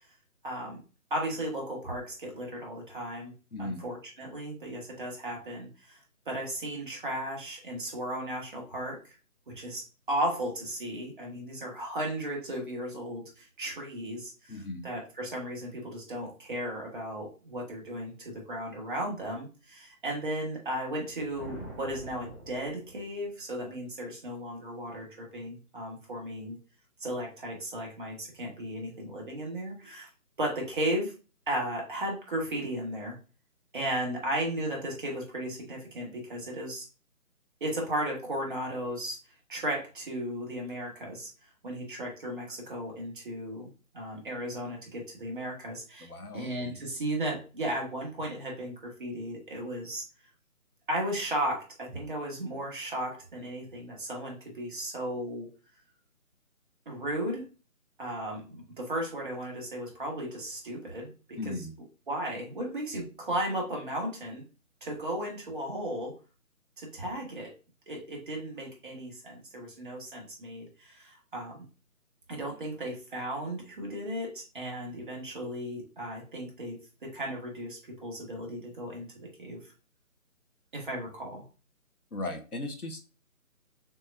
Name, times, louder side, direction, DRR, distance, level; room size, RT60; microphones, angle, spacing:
voice 1, 0.4-0.8 1.1-3.3 3.6-6.0 6.3-9.2 9.5-9.8 10.1-26.6 27.0-30.1 30.4-31.1 31.5-33.2 33.7-36.9 37.6-39.2 39.5-41.3 41.6-43.7 43.9-50.0 50.9-55.5 56.9-57.5 58.0-61.5 62.1-64.4 64.8-66.1 66.8-67.5 67.9-71.6 72.3-79.6 80.7-81.4, right 1 dB, 35° right, 0 dB, 1.6 m, -35 dB
voice 2, 3.5-3.8 14.5-14.8 46.0-46.8 61.4-61.7 82.1-83.0, left 2 dB, 90° left, 5 dB, 1.2 m, -37 dB
sound 1, 21.0-23.4, right 1 dB, 10° right, 0.7 m, -45 dB
6.3 x 2.9 x 2.6 m, 0.35 s
figure-of-eight pair, 150°, 44 cm